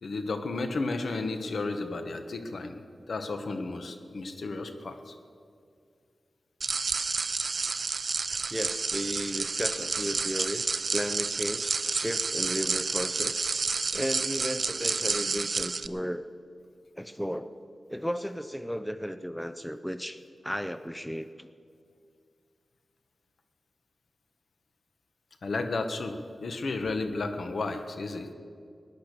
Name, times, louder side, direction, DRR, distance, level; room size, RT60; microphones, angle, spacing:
voice 1, 0.0-2.8 3.1-5.1 25.4-28.3, left 3 dB, 75° left, 7 dB, 1.2 m, -33 dB
sound 1, 6.6-15.9, right 4 dB, 60° right, 0.5 m, -30 dB
voice 2, 8.5-13.4 13.9-16.3 17.0-17.5 17.9-20.2 20.4-21.5, equal, 5° left, 11 dB, 0.5 m, -34 dB
18.5 x 10.5 x 6.8 m, 2.3 s
wide cardioid pair, 110°, 0 cm